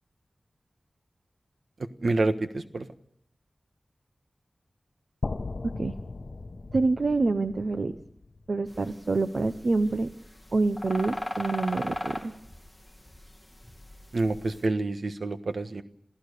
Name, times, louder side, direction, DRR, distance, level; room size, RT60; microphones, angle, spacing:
voice 1, 2.0-2.9 14.1-15.8, right 2 dB, 80° right, 9 dB, 1.4 m, -27 dB
sound 1, 5.2-9.3, left 3 dB, 60° left, 1.0 m, -38 dB
voice 2, 5.6-5.9 6.7-8.0 8.5-10.1 10.5-12.3, right 3 dB, 65° right, 10 dB, 0.9 m, -26 dB
sound 2, 8.7-14.6, left 1 dB, 5° left, 2.6 m, -37 dB
28.0 x 15.5 x 6.8 m, 0.72 s
wide cardioid pair, 75°, 0 cm